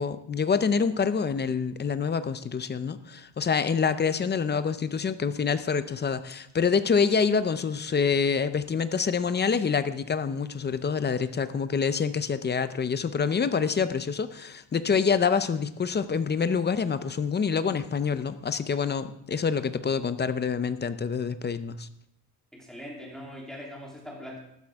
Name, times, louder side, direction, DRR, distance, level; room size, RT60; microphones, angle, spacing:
voice 1, 0.0-21.9, left 6 dB, 25° left, 12 dB, 0.5 m, -26 dB
voice 2, 22.5-24.4, equal, ahead, -4 dB, 3.0 m, -41 dB
14.0 x 12.5 x 3.5 m, 0.77 s
cardioid pair, 150°, 41 cm